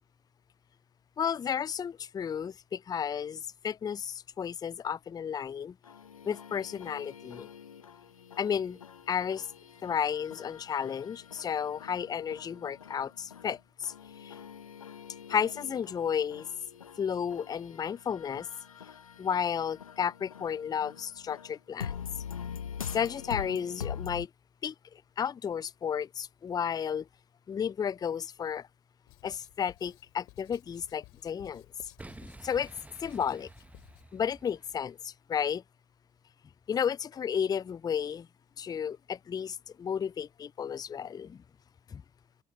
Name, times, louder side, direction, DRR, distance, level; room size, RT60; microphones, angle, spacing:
voice 1, 1.2-5.7 6.2-7.5 8.4-8.8 9.1-9.5 9.8-13.9 14.2-14.4 15.3-16.5 17.0-18.5 19.2-21.9 22.9-24.3 24.6-24.7 25.2-27.0 27.5-28.7 29.2-31.6 32.4-32.7 33.0-33.5 34.1-35.6 36.7-38.3 38.6-41.4 41.9-42.0, left 7 dB, 25° left, 0.4 m, -32 dB
sound 1, 5.8-24.3, left 7 dB, 90° left, 0.8 m, -44 dB
Writing, 29.1-34.1, left 22 dB, 65° left, 2.9 m, -57 dB
Boom, 32.0-35.0, right 1 dB, 10° right, 1.2 m, -50 dB
open air
figure-of-eight pair, 55°, 17 cm